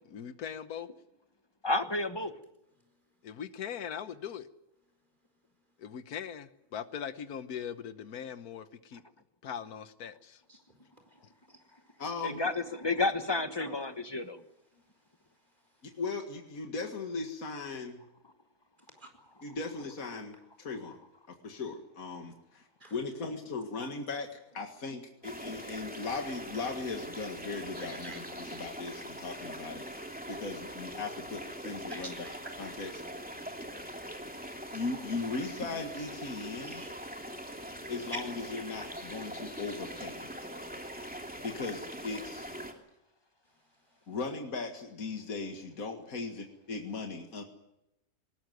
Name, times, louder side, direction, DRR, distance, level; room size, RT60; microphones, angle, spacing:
voice 1, 0.1-0.9 3.2-4.5 5.8-9.0 9.4-10.4, left 8 dB, 90° left, 11 dB, 1.5 m, -40 dB
voice 2, 1.6-2.3 12.2-14.4, left 3 dB, 20° left, 8 dB, 1.3 m, -31 dB
voice 3, 10.5-11.2 11.5-12.1 13.6-13.8 14.7-16.0 18.8-19.3 22.8-23.0 27.8-28.6 31.9-32.5 32.8-32.9 36.6-37.4 43.4-44.2, right 1 dB, 30° right, 4 dB, 4.8 m, -50 dB
voice 4, 12.0-12.4 15.8-18.0 19.4-21.0 21.4-22.6 22.9-29.9 30.3-32.1 32.6-32.9 34.7-36.8 37.9-40.3 41.4-42.5 44.1-47.4, left 3 dB, 70° left, 3 dB, 2.3 m, -38 dB
sound 1, 25.2-42.7, equal, 5° right, 2.7 m, -42 dB
19.5 x 19.5 x 9.3 m, 0.87 s
omnidirectional pair, 1.6 m